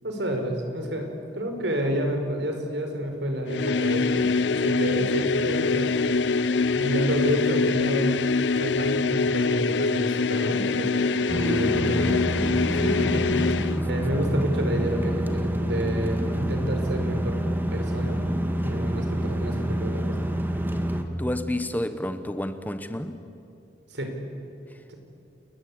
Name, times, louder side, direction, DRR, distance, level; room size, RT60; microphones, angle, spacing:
voice 1, 0.0-5.9 6.7-8.2 8.5-12.4 12.7-17.4 17.7-18.2 18.6-20.2 23.9-24.2 24.9-25.0, equal, 75° right, 5.0 m, -29 dB
sound 1, 3.5-13.8, left 4 dB, 75° left, 0.6 m, -24 dB
sound 2, 11.3-21.0, right 1 dB, 10° right, 2.0 m, -27 dB
voice 2, 21.2-23.2 24.7-24.8, left 1 dB, 10° left, 1.0 m, -30 dB
30.0 x 21.5 x 8.7 m
head